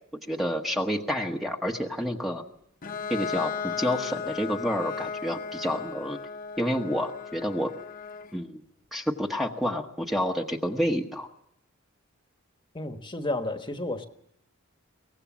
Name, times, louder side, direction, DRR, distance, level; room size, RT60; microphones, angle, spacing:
voice 1, 0.3-2.4 3.1-6.2 6.6-7.7 8.3-8.6 8.9-11.3, equal, ahead, 2 dB, 1.1 m, -29 dB
Bowed string instrument, 2.8-8.4, left 6 dB, 45° left, 1.1 m, -36 dB
voice 2, 12.7-14.1, left 2 dB, 25° left, 7 dB, 1.3 m, -31 dB
23.0 x 18.0 x 7.3 m, 0.76 s
head